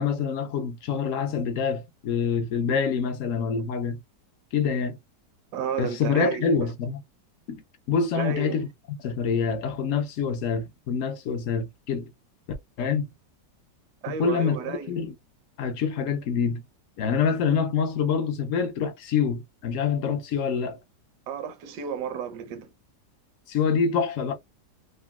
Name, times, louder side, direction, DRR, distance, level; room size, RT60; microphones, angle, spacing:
voice 1, 0.0-4.0 4.5-5.0 5.8-7.0 7.5-7.6 7.9-12.1 12.8-13.1 14.1-15.1 15.6-16.6 17.0-20.8 23.5-24.3, left 6 dB, 70° left, 0.7 m, -26 dB
voice 2, 5.5-6.7 8.1-8.6 14.0-14.9 21.3-22.7, right 7 dB, 75° right, 1.2 m, -32 dB
3.8 x 2.0 x 2.3 m
omnidirectional pair, 1.8 m